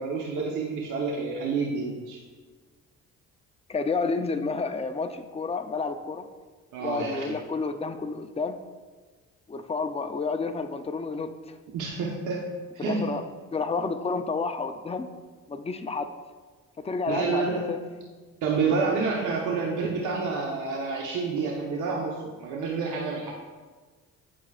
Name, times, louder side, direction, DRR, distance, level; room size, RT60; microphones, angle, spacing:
voice 1, 0.0-2.2 6.7-7.4 11.7-12.5 12.7-13.1 17.1-17.9 18.4-23.3, right 4 dB, 85° right, -1 dB, 1.1 m, -29 dB
voice 2, 3.7-6.2 6.8-8.6 9.5-11.3 12.8-13.2 13.5-15.1 15.5-16.1 16.8-17.8, left 4 dB, 20° left, 7 dB, 0.6 m, -30 dB
15.0 x 6.1 x 2.5 m, 1.4 s
cardioid pair, 90°, 30 cm